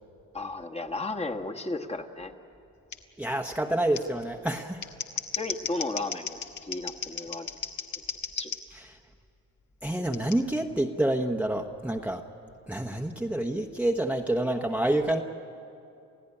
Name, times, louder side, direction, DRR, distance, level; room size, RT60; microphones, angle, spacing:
voice 1, 0.3-2.3 5.3-7.5 8.3-8.5, left 2 dB, 20° left, 4 dB, 1.5 m, -34 dB
Scissors, 2.9-3.0 3.9-4.0 4.7-8.6 10.1-10.4, left 7 dB, 70° left, 1.7 m, -35 dB
voice 2, 3.2-4.9 8.7-8.9 9.8-12.2 12.7-15.2, right 1 dB, 5° right, 3 dB, 1.1 m, -28 dB
29.0 x 16.0 x 9.9 m, 2.7 s
cardioid pair, 90°, 30 cm